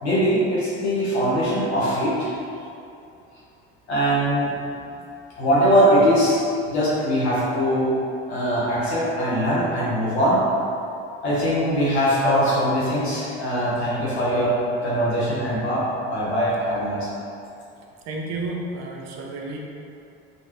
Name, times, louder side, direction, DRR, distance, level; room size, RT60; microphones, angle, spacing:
voice 1, 0.0-2.6 3.9-4.5 5.4-7.9 8.3-10.4 11.2-14.5 14.8-17.1, equal, 90° left, -8 dB, 1.1 m, -21 dB
voice 2, 18.0-19.6, right 2 dB, 55° right, -1 dB, 0.7 m, -31 dB
4.0 x 2.6 x 3.3 m, 2.6 s
hypercardioid pair, 65°, 32 cm